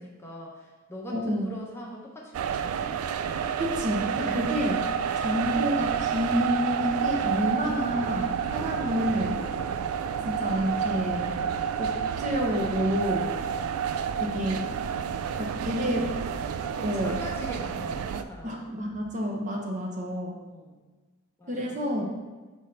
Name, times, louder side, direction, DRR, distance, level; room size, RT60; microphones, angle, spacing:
voice 1, 0.0-3.0 4.2-4.5 13.3-13.8 15.8-15.9 16.7-18.7 20.4-20.8 21.4-21.8, equal, 10° left, -2 dB, 0.7 m, -42 dB
voice 2, 1.1-1.5 3.6-4.8 5.2-9.5 10.2-11.3 11.8-13.4 14.2-14.7 15.4-16.2 16.8-17.2 18.4-20.4 21.5-22.0, equal, 35° right, -1 dB, 0.8 m, -29 dB
sound 1, 2.3-18.2, right 7 dB, 80° right, 0.3 m, -30 dB
5.5 x 3.2 x 5.6 m, 1.3 s
head